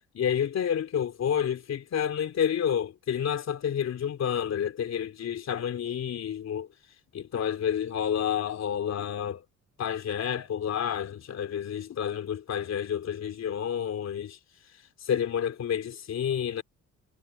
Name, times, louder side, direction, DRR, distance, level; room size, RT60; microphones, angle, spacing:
voice 1, 0.0-6.7 7.1-9.4 9.8-14.4 15.0-16.6, left 9 dB, 60° left, 3.2 m, -29 dB
cardioid pair, 90°, 30 cm